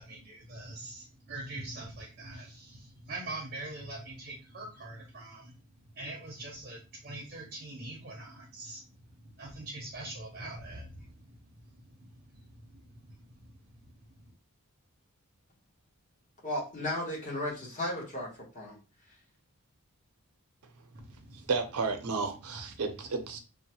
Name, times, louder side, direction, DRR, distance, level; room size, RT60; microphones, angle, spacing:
voice 1, 0.0-2.8 3.1-5.5 6.0-6.8 7.0-8.8 9.4-10.9 20.9-21.0, right 2 dB, 40° right, 0.6 m, -42 dB
voice 2, 16.4-18.8, left 1 dB, 35° left, 1.0 m, -35 dB
voice 3, 21.3-23.4, right 4 dB, 80° right, 0.6 m, -32 dB
2.9 x 2.1 x 2.9 m
head